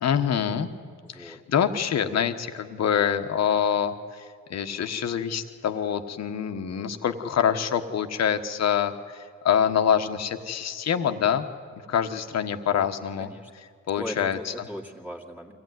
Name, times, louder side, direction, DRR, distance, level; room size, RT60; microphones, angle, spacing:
voice 1, 0.0-0.7 1.2-4.2 4.5-9.2 9.4-11.5 11.9-13.3 13.9-14.4, left 8 dB, 60° left, 8 dB, 1.3 m, -25 dB
voice 2, 1.0-1.4 12.5-13.5 14.0-15.5, equal, 5° right, -1 dB, 2.2 m, -39 dB
24.5 x 15.5 x 9.4 m, 2.1 s
cardioid pair, 90°, 30 cm